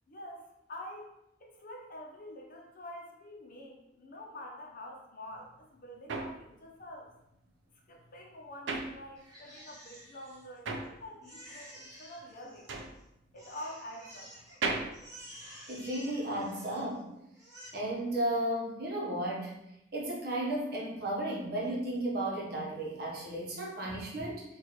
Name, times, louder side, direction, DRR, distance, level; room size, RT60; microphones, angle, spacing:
voice 1, 0.1-0.4 0.7-7.1 7.9-12.7 13.3-14.3, left 1 dB, 50° left, 0 dB, 0.7 m, -47 dB
sound 1, 5.3-9.6 9.9-16.1, right 3 dB, 70° right, 0.5 m, -39 dB
Crying sobbing, 9.2-10.8 11.2-13.0 13.4-14.6 14.9-17.0 17.3-17.7, equal, 20° right, 1.2 m, -51 dB
voice 2, 15.7-17.1 17.7-19.6 19.9-24.4, right 1 dB, 55° right, -3 dB, 1.0 m, -34 dB
4.5 x 2.5 x 2.9 m, 0.84 s
head